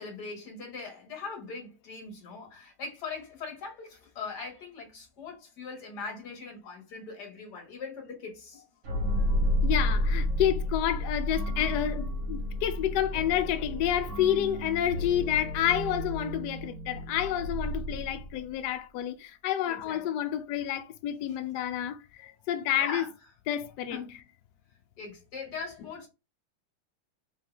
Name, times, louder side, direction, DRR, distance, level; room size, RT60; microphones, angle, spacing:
voice 1, 0.0-8.7 19.7-20.1 22.2-22.3 22.8-23.1 23.9-24.1 25.0-26.1, left 4 dB, 50° left, 1.9 m, -41 dB
sound 1, 8.8-18.5, left 1 dB, 70° right, 1.9 m, -31 dB
voice 2, 9.6-23.1 23.5-24.0, left 11 dB, 90° left, 0.9 m, -29 dB
4.0 x 3.4 x 3.3 m
omnidirectional pair, 2.4 m